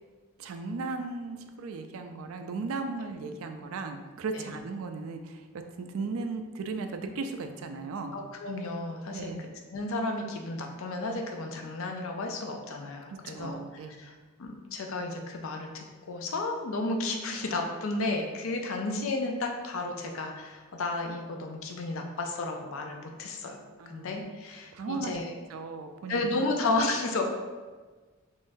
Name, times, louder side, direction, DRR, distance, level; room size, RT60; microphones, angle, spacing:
voice 1, 0.4-8.1 9.1-9.4 13.3-13.9 23.8-24.1 24.7-25.1 25.5-26.5, right 3 dB, 80° right, 6 dB, 0.4 m, -36 dB
voice 2, 8.1-14.1 14.4-25.3 26.1-27.4, left 2 dB, 75° left, 3 dB, 0.5 m, -33 dB
3.6 x 3.1 x 2.6 m, 1.4 s
head